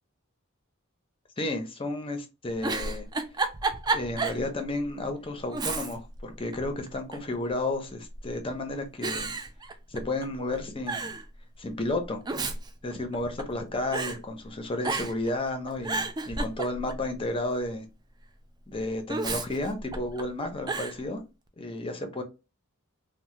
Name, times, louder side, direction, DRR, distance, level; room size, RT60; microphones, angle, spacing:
voice 1, 1.4-3.1 3.9-9.3 9.9-11.1 11.6-12.2 12.8-17.9 18.7-21.2 21.6-22.2, left 2 dB, 25° left, 0.6 m, -32 dB
Giggle, 2.5-4.4 4.8-4.9 5.5-6.2 6.5-7.3 8.1-8.5 9.0-10.3 10.5-10.6 10.9-11.2 12.0-13.6 13.9-14.2 14.8-15.3 15.7-17.1 19.1-20.2 20.7-21.0, right 3 dB, 20° right, 0.3 m, -31 dB
2.7 x 2.1 x 3.1 m
head